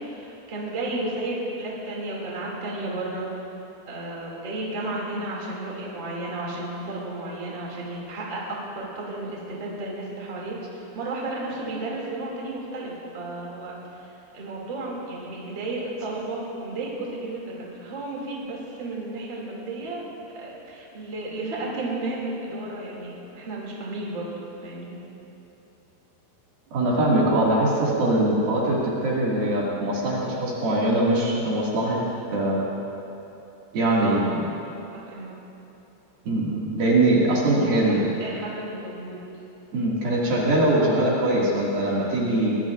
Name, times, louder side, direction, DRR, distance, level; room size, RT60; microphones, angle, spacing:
voice 1, 0.0-3.3 3.9-20.0 20.3-24.3 24.6-25.0 33.8-34.7 34.9-35.4 37.6-39.2, right 2 dB, 30° right, -4 dB, 2.7 m, -33 dB
voice 2, 26.7-32.0 32.3-32.7 33.7-34.4 36.3-38.1 39.7-42.6, right 1 dB, 60° right, -5 dB, 3.9 m, -22 dB
23.5 x 19.0 x 2.6 m, 2.9 s
omnidirectional pair, 5.0 m